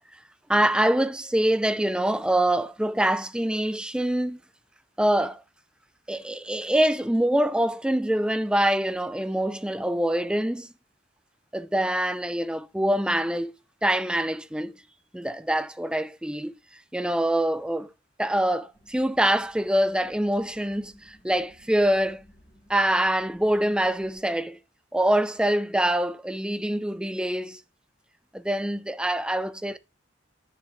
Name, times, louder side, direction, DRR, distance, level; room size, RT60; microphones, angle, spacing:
voice 1, 0.5-4.4 5.0-5.4 6.1-10.7 11.5-13.5 13.8-14.7 15.1-16.5 16.9-17.9 18.2-22.2 22.7-24.6 24.9-27.6 28.3-29.8, right 1 dB, 5° right, 0.4 m, -25 dB
sound 1, 18.7-24.2, equal, 60° left, 6.3 m, -58 dB
9.7 x 6.6 x 3.7 m
head